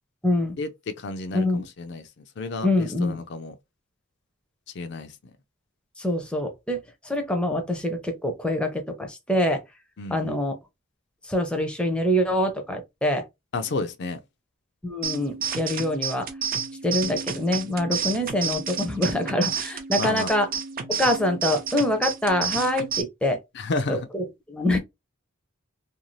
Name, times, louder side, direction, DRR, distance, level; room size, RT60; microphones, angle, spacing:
voice 1, 0.2-0.6 1.3-1.7 2.6-3.2 6.0-9.6 10.1-10.6 11.2-13.2 14.8-16.3 16.8-20.5 20.9-23.4 23.9-24.8, left 1 dB, 5° left, 0.6 m, -25 dB
voice 2, 1.0-3.5 4.7-5.1 10.0-10.4 13.5-14.2 18.1-18.2 20.0-20.3 23.5-24.1, left 3 dB, 55° left, 0.4 m, -31 dB
sound 1, 15.0-23.0, right 7 dB, 45° right, 0.5 m, -31 dB
2.6 x 2.3 x 3.1 m
head